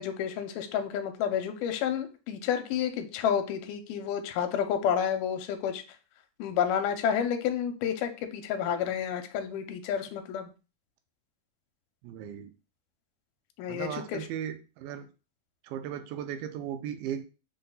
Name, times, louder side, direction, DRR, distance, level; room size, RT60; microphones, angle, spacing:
voice 1, 0.0-5.8 6.4-10.5 13.6-14.3, left 8 dB, 80° left, 7 dB, 2.1 m, -30 dB
voice 2, 12.0-12.5 13.7-15.1 15.6-17.3, right 9 dB, 90° right, 7 dB, 2.3 m, -36 dB
5.6 x 2.2 x 3.8 m, 0.33 s
omnidirectional pair, 3.9 m